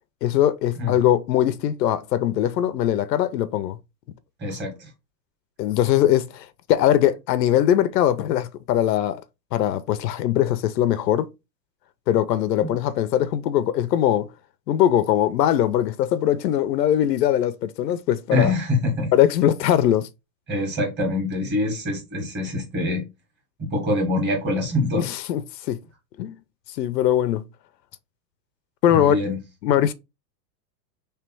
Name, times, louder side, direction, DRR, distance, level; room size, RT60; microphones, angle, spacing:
voice 1, 0.2-3.8 5.6-9.2 9.5-11.3 12.1-14.3 14.7-18.5 19.1-20.1 24.9-25.8 26.2-26.4 26.8-27.4 28.8-29.2 29.6-29.9, left 11 dB, 75° left, 0.7 m, -21 dB
voice 2, 4.4-4.9 12.6-12.7 18.3-19.1 20.5-23.1 23.6-25.1 28.9-29.4, left 2 dB, 20° right, 1.7 m, -24 dB
3.4 x 3.3 x 4.5 m
supercardioid pair, 155°, 50 cm